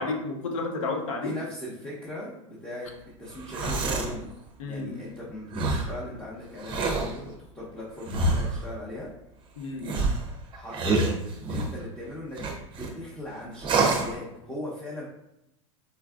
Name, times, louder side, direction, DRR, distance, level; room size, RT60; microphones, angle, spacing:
voice 1, 0.0-1.3 4.6-5.0 9.6-10.0, left 3 dB, 85° left, 3 dB, 0.6 m, -31 dB
voice 2, 1.2-2.9 3.2-4.3 4.7-9.1 10.5-11.1 11.5-15.1, left 1 dB, 10° left, -8 dB, 0.9 m, -38 dB
sound 1, 3.3-4.2 5.5-5.9 6.6-7.1 8.1-8.6 9.8-11.8 12.4-12.9 13.6-14.1, right 3 dB, 30° right, 0.6 m, -27 dB
4.4 x 2.3 x 2.4 m, 0.86 s
hypercardioid pair, 105°, 16 cm